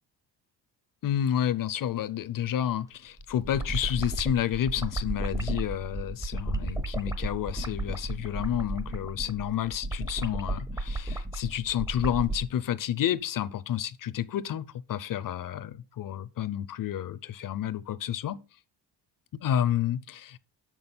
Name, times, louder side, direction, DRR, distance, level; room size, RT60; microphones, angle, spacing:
voice 1, 1.0-18.4 19.4-20.4, left 10 dB, 50° left, 0.6 m, -30 dB
sound 1, 3.2-12.4, right 2 dB, 5° right, 0.6 m, -33 dB
7.2 x 6.2 x 5.4 m
cardioid pair, 165°, 44 cm